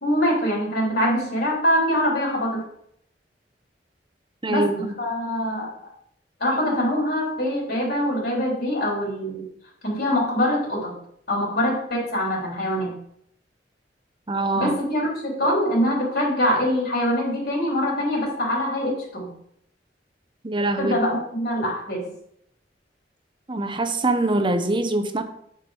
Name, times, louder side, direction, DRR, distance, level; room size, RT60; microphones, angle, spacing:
voice 1, 0.0-2.6 4.5-5.7 6.4-9.4 9.8-11.0 11.3-12.9 14.5-19.3 20.8-22.1, equal, 60° left, -4 dB, 3.6 m, -24 dB
voice 2, 4.4-5.0 14.3-14.7 20.4-21.0 23.5-25.2, right 2 dB, 30° right, 8 dB, 0.8 m, -23 dB
9.3 x 4.7 x 4.8 m, 0.72 s
head